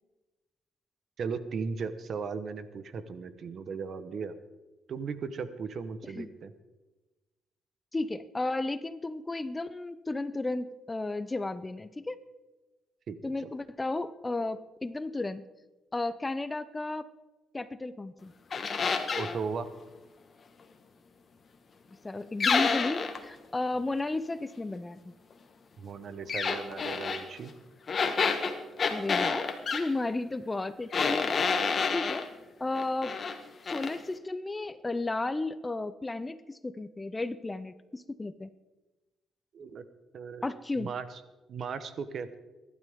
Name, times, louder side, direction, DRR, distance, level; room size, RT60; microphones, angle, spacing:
voice 1, 1.2-4.4 4.9-6.5 13.1-13.5 19.2-19.7 25.8-27.5 39.5-39.8 40.1-40.5 40.8-41.1 41.5-42.3, right 5 dB, 55° right, 12 dB, 1.1 m, -37 dB
voice 2, 7.9-12.2 13.2-15.4 15.9-17.1 17.5-18.3 22.0-25.1 28.9-31.6 31.9-32.3 32.6-33.1 33.6-38.5 40.4-40.9, left 2 dB, 20° left, 14 dB, 0.7 m, -33 dB
sound 1, 18.5-19.4 22.4-23.2 26.3-27.2 27.9-29.9 30.9-32.3 32.7-33.4 33.7-33.9, left 5 dB, 45° left, 1.6 m, -28 dB
23.0 x 12.0 x 3.7 m, 1.2 s
cardioid pair, 90°, 0 cm